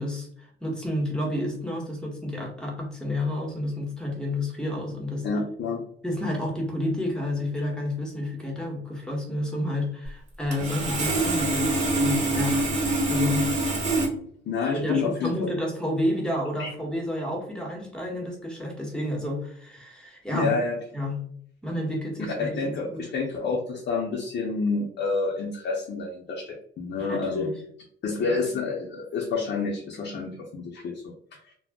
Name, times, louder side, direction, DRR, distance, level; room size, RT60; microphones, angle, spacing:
voice 1, 0.0-5.3 6.0-12.6 13.1-13.5 14.7-20.5 20.9-21.2 21.6-22.7 27.0-27.5, left 1 dB, 5° left, -1 dB, 1.1 m, -30 dB
voice 2, 5.2-5.9 14.5-15.5 16.6-16.7 20.3-20.8 22.2-27.5 28.0-31.0, left 4 dB, 60° left, -1 dB, 0.6 m, -28 dB
Sawing, 10.5-14.1, right 2 dB, 35° right, 1.1 m, -25 dB
2.3 x 2.1 x 3.5 m, 0.63 s
cardioid pair, 90°, 20 cm